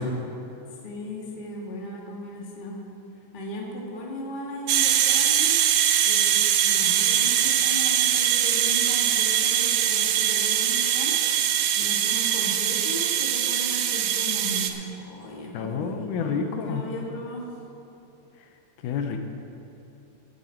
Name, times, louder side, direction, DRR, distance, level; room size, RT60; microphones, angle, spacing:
voice 1, 0.8-2.8 3.3-5.6 6.1-11.1 11.4-17.5, left 1 dB, 25° left, -2 dB, 1.1 m, -37 dB
sound 1, 4.7-14.7, right 10 dB, 80° right, 2.1 m, -22 dB
voice 2, 15.5-16.8 18.8-19.2, left 6 dB, 80° left, 5 dB, 2.3 m, -29 dB
16.5 x 8.5 x 4.4 m, 2.9 s
omnidirectional pair, 3.6 m